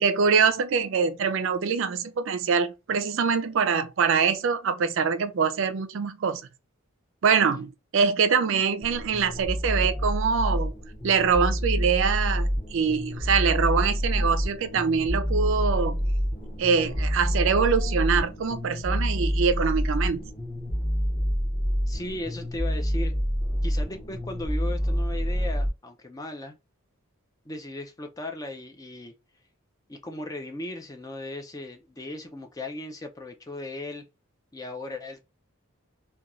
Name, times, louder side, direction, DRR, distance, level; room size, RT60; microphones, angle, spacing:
voice 1, 0.0-6.4 7.2-10.7 11.0-16.0 16.6-20.2, right 6 dB, 60° right, 0.4 m, -24 dB
sound 1, 8.8-25.7, equal, ahead, 0.9 m, -27 dB
voice 2, 21.9-23.1 23.6-26.6 27.5-29.1 29.9-34.0 34.5-35.2, left 1 dB, 15° left, 0.3 m, -37 dB
2.9 x 2.2 x 2.4 m
head